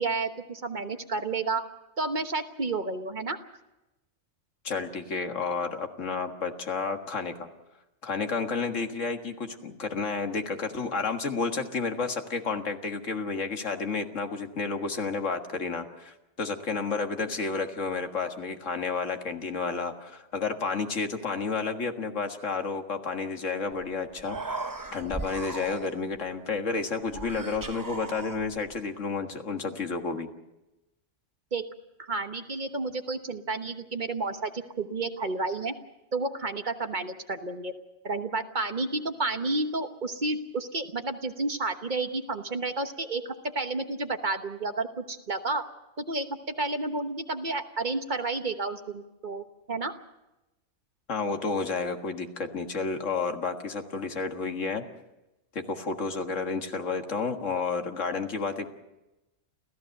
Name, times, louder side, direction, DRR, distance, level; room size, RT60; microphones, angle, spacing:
voice 1, 0.0-1.6 2.0-3.4 31.5-31.7 32.0-35.7 36.1-37.7 38.0-43.2 43.5-45.6 46.0-49.9, right 3 dB, 40° right, 7 dB, 1.2 m, -31 dB
voice 2, 4.6-7.5 8.0-24.4 24.9-30.3 51.1-54.8 55.5-58.7, left 4 dB, 85° left, 5 dB, 2.0 m, -31 dB
Human voice, 23.7-23.8 24.1-26.2 27.1-28.8, right 3 dB, 20° right, 0.7 m, -38 dB
30.0 x 14.5 x 6.6 m, 0.98 s
omnidirectional pair, 1.3 m